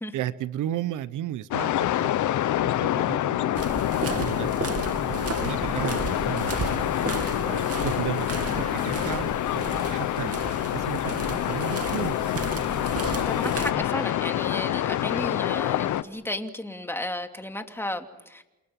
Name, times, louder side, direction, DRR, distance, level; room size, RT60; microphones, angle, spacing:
voice 1, 0.1-1.7 2.0-2.1 2.6-3.7 4.1-4.5 5.0-8.3 8.6-9.3 9.8-12.1 12.8-13.4, right 12 dB, 85° right, 16 dB, 1.0 m, -34 dB
sound 1, 1.5-16.0, left 12 dB, 75° left, 1.0 m, -27 dB
sound 2, 3.6-13.7, right 6 dB, 50° right, 2.5 m, -34 dB
voice 2, 13.0-18.4, left 1 dB, 10° left, 5 dB, 2.9 m, -34 dB
29.5 x 28.0 x 6.1 m, 0.99 s
cardioid pair, 90°, 30 cm